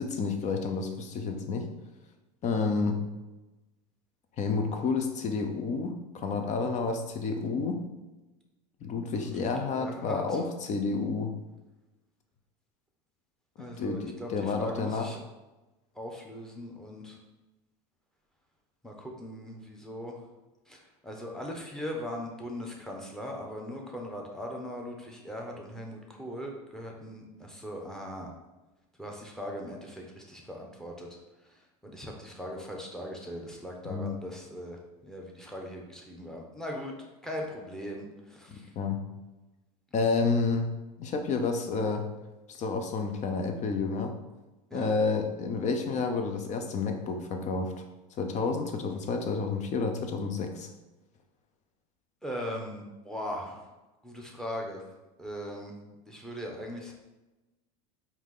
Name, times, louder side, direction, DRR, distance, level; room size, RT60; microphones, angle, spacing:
voice 1, 0.0-1.7 2.4-3.0 4.4-7.8 8.8-11.3 13.8-15.1 33.9-34.1 38.5-39.0 39.9-40.7 41.0-42.1 42.5-44.1 44.7-47.8 48.2-50.7, left 4 dB, 40° left, 5 dB, 0.7 m, -30 dB
voice 2, 9.0-9.5 9.7-10.4 13.6-15.2 15.9-17.2 18.8-20.2 20.7-28.3 29.0-38.7 44.7-44.9 52.2-53.7 54.0-54.9 55.2-55.8 56.1-56.9, equal, 5° left, 0 dB, 1.0 m, -39 dB
4.5 x 2.8 x 3.7 m, 1.1 s
hypercardioid pair, 90°, 19 cm